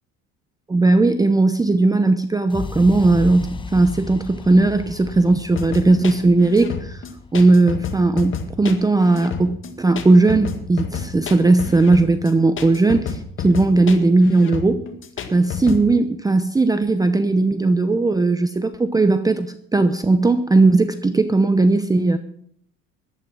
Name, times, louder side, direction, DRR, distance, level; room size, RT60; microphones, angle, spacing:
voice 1, 0.7-7.0 7.3-14.9 15.3-22.2, right 3 dB, 10° right, 11 dB, 0.7 m, -17 dB
sound 1, 2.5-10.4, left 5 dB, 15° left, 0.8 m, -36 dB
sound 2, 5.6-15.8, left 7 dB, 45° left, 2.0 m, -30 dB
14.0 x 11.5 x 6.1 m, 0.65 s
cardioid pair, 120°, 30 cm